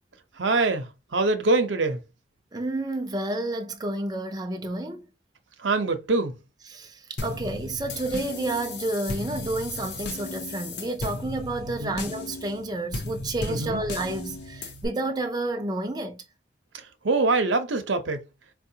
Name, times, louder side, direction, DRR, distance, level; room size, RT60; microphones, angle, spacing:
voice 1, 0.4-2.0 5.6-6.4 11.8-12.0 13.5-13.8 16.7-18.2, right 3 dB, 85° right, 0.7 m, -24 dB
voice 2, 2.5-5.0 6.7-16.2, right 2 dB, 20° right, 0.5 m, -30 dB
sound 1, 7.2-14.9, left 2 dB, 65° left, 0.8 m, -35 dB
4.6 x 2.3 x 2.8 m
head